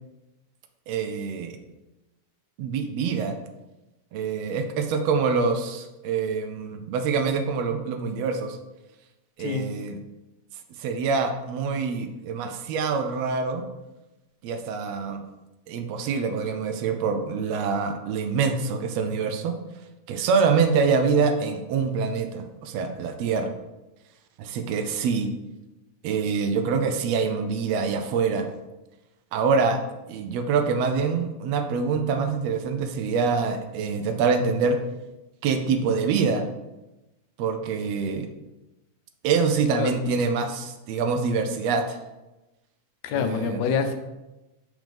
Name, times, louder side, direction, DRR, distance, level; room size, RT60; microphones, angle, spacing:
voice 1, 0.9-1.6 2.6-3.3 4.1-8.6 9.4-10.0 10.8-13.6 14.4-15.2 15.7-19.5 20.1-23.5 24.4-25.3 26.0-28.5 29.3-29.8 30.1-34.8 35.4-36.4 37.4-38.3 39.2-42.0 43.1-43.6, right 5 dB, 80° right, 6 dB, 1.5 m, -25 dB
voice 2, 43.0-43.9, left 6 dB, 75° left, 6 dB, 1.7 m, -26 dB
6.2 x 5.2 x 3.4 m, 1.0 s
omnidirectional pair, 3.4 m